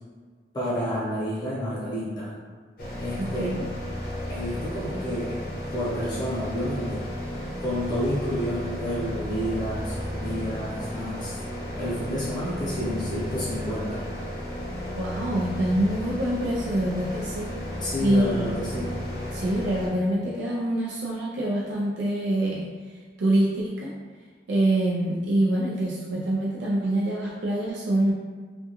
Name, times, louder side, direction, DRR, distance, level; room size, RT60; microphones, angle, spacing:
voice 1, 0.5-2.3 3.0-3.5 4.3-5.4 5.7-7.0 7.6-11.4 11.7-14.0 17.8-18.9, equal, 25° left, -9 dB, 0.8 m, -30 dB
sound 1, 2.8-19.9, equal, 50° left, 0.7 m, -34 dB
voice 2, 3.2-3.6 15.0-17.5 18.0-18.5 19.3-22.7 23.2-23.9 24.5-28.1, right 1 dB, 75° right, -5 dB, 0.4 m, -25 dB
2.3 x 2.2 x 2.9 m, 1.5 s
head